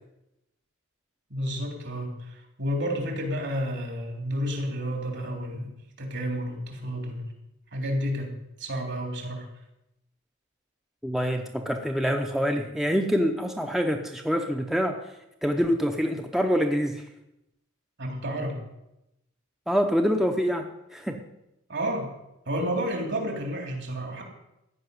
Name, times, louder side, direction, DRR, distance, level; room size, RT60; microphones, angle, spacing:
voice 1, 1.3-5.7 6.0-7.2 7.7-9.5 18.0-18.6 21.7-22.1 22.5-24.2, equal, 55° right, 2 dB, 3.4 m, -31 dB
voice 2, 11.0-15.0 15.4-17.1 19.7-20.7 20.9-21.2, equal, ahead, 4 dB, 0.8 m, -25 dB
15.0 x 6.0 x 9.7 m, 0.88 s
head